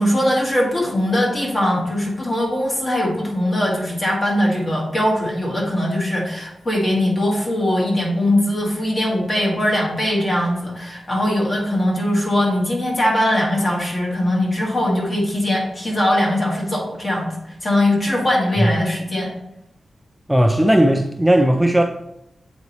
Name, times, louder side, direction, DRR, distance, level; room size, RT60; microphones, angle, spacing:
voice 1, 0.0-19.3, left 1 dB, 35° left, -2 dB, 1.8 m, -21 dB
voice 2, 20.3-21.9, right 1 dB, 5° right, 4 dB, 0.3 m, -16 dB
7.8 x 4.1 x 3.2 m, 0.82 s
wide cardioid pair, 120°, 0 cm